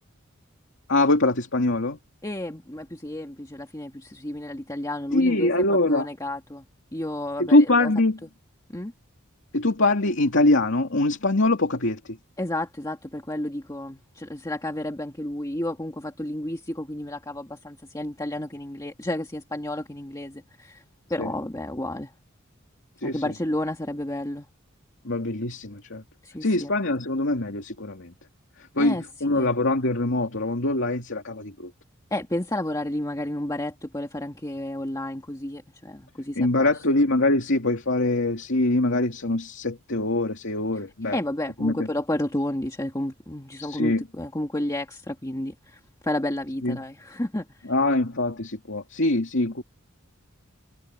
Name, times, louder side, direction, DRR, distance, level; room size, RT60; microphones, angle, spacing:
voice 1, 0.9-2.0 5.1-6.1 7.4-8.2 9.5-12.2 21.2-21.3 23.0-23.2 25.0-26.0 26.4-28.1 28.8-31.7 36.4-41.2 41.6-41.7 43.6-44.0 46.6-46.8 47.7-49.6, left 2 dB, 65° left, 2.7 m, -23 dB
voice 2, 2.2-6.7 6.9-7.9 8.7-8.9 12.4-20.8 21.1-22.1 23.0-24.5 26.2-26.7 28.8-29.5 32.1-36.8 40.7-47.7, left 1 dB, 15° left, 1.9 m, -31 dB
head